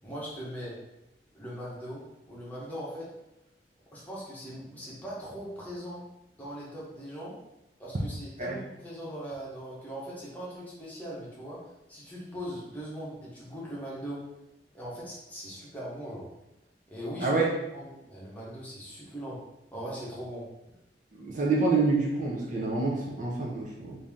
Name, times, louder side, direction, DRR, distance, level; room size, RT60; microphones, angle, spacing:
voice 1, 0.0-0.7 1.3-3.1 3.9-6.0 6.4-7.3 7.8-11.6 11.9-14.2 14.7-16.3 16.9-17.4 17.7-19.4 19.7-20.4, equal, 10° left, -7 dB, 1.0 m, -40 dB
voice 2, 21.1-24.0, right 3 dB, 45° right, -3 dB, 0.6 m, -27 dB
3.2 x 2.7 x 3.5 m, 0.91 s
head